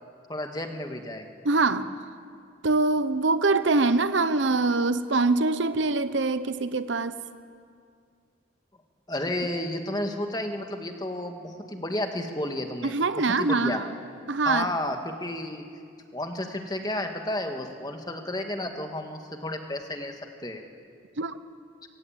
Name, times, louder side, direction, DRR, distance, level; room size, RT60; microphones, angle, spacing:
voice 1, 0.3-1.3 9.1-13.8 14.4-15.6 16.1-20.6, left 1 dB, 20° left, 5 dB, 1.7 m, -32 dB
voice 2, 1.4-1.9 2.6-7.2 12.8-13.9 14.3-14.7 21.2-21.4, right 3 dB, 80° right, 13 dB, 0.9 m, -24 dB
24.0 x 16.5 x 8.8 m, 2.3 s
head